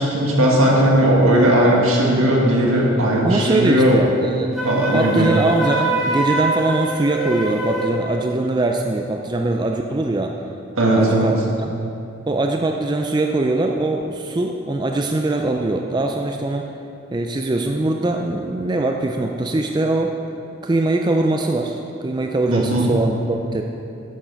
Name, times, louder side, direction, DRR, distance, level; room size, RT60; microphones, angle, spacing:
voice 1, 0.0-4.0 4.6-5.3 10.8-11.3 22.5-22.9, right 1 dB, 80° right, -3 dB, 1.9 m, -17 dB
voice 2, 3.2-4.6 4.9-10.3 11.0-11.7 12.3-16.7 17.1-20.2 20.6-23.6, right 2 dB, 20° right, 3 dB, 0.3 m, -22 dB
Wind instrument woodwind instrument, 4.5-8.0, right 2 dB, ahead, 1.7 m, -24 dB
8.9 x 7.2 x 5.7 m, 2.6 s
head